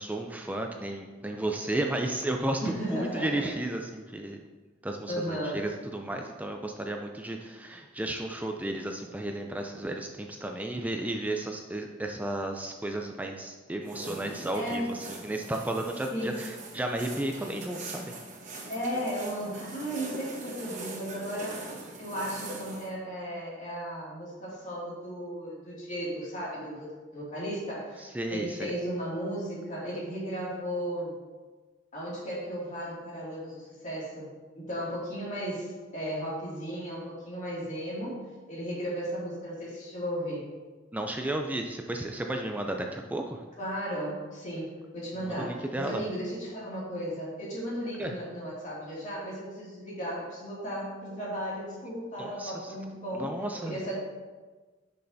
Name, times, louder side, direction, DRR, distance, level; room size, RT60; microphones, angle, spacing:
voice 1, 0.0-4.4 4.8-18.1 28.0-28.7 40.9-43.4 45.2-46.0 48.0-48.1 52.2-52.7 53.1-53.8, right 1 dB, 10° right, 3 dB, 0.3 m, -33 dB
voice 2, 2.6-3.5 5.1-5.6 14.3-14.9 16.1-16.4 18.7-21.6 22.0-31.1 31.9-34.3 34.5-40.5 43.6-53.9, equal, 40° left, -6 dB, 2.3 m, -35 dB
Snow Harvesting, 13.8-22.9, right 3 dB, 40° right, 1.1 m, -42 dB
10.0 x 5.4 x 2.7 m, 1.3 s
head